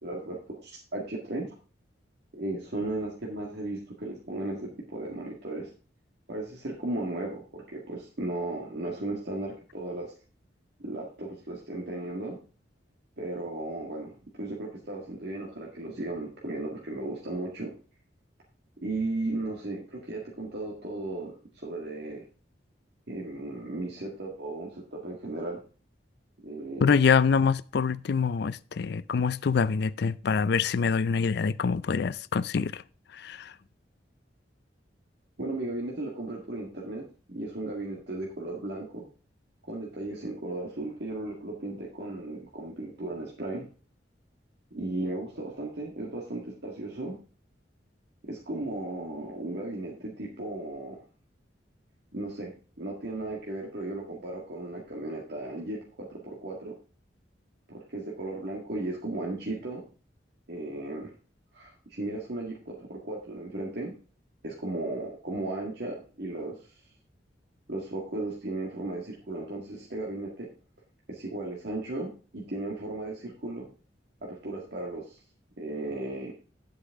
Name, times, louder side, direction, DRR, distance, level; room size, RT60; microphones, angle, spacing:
voice 1, 0.0-1.5 2.3-5.7 6.3-10.1 10.8-12.4 13.2-14.1 14.4-17.7 18.8-22.2 23.1-25.6 26.4-27.0 35.4-39.1 39.7-43.7 44.7-47.2 48.2-51.0 52.1-52.5 52.8-56.7 57.7-59.8 60.5-61.1 61.5-63.9 64.4-66.7 67.7-70.5 71.1-73.7 74.2-75.2 75.6-76.3, right 2 dB, 65° right, 1.9 m, -35 dB
voice 2, 26.8-32.8 33.1-33.5, left 5 dB, 65° left, 0.4 m, -25 dB
10.5 x 8.1 x 3.6 m
head